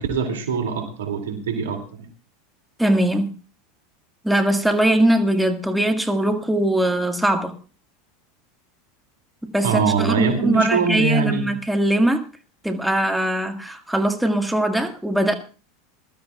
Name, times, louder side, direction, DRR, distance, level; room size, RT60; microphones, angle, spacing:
voice 1, 0.0-2.1 9.6-11.5, right 6 dB, 80° right, 2.6 m, -23 dB
voice 2, 2.8-3.3 4.2-7.5 9.4-12.2 12.6-15.3, right 1 dB, 5° right, 1.8 m, -21 dB
22.0 x 12.5 x 2.4 m
hypercardioid pair, 90°, 0 cm